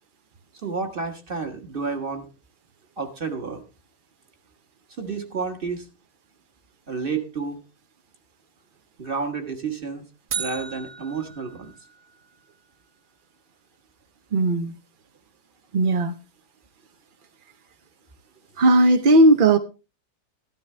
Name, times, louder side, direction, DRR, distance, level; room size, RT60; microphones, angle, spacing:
voice 1, 0.6-2.3 3.0-3.6 5.0-5.9 6.9-7.6 9.0-10.0 10.3-11.7, right 5 dB, 35° right, 5 dB, 1.6 m, -30 dB
sound 1, 10.3-12.4, right 7 dB, 70° right, 1.6 m, -35 dB
voice 2, 14.3-14.7 15.7-16.2 18.6-19.6, right 2 dB, 50° right, 7 dB, 0.6 m, -16 dB
13.5 x 12.0 x 3.2 m, 0.31 s
omnidirectional pair, 1.7 m